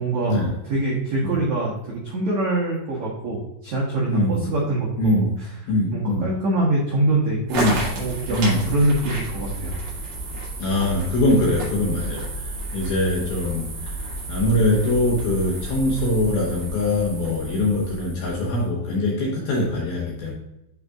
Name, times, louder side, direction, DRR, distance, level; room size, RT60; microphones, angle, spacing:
voice 1, 0.0-5.5 5.9-7.6 7.9-9.8, right 2 dB, 90° right, -5 dB, 1.6 m, -24 dB
voice 2, 4.1-4.5 5.0-5.3 5.7-6.3 7.5-7.8 8.3-8.6 10.6-20.3, left 1 dB, 70° left, -3 dB, 2.4 m, -23 dB
sound 1, 7.5-18.7, right 2 dB, 45° right, 3.0 m, -31 dB
11.0 x 4.1 x 2.4 m, 0.87 s
omnidirectional pair, 5.7 m